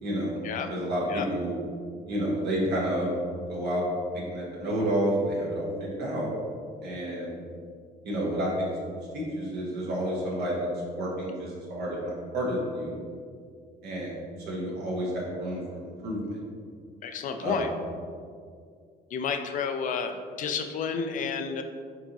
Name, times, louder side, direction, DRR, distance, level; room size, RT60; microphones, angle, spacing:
voice 1, 0.0-0.4 0.7-1.6 2.1-3.1 3.5-3.8 4.1-6.3 6.8-7.4 8.0-10.7 10.9-12.9 13.8-16.4 17.4-17.6, equal, 70° right, -5 dB, 1.2 m, -30 dB
voice 2, 17.0-17.7 19.1-21.6, left 5 dB, 50° left, 6 dB, 0.4 m, -31 dB
4.4 x 4.0 x 2.9 m, 2.2 s
cardioid pair, 110°, 17 cm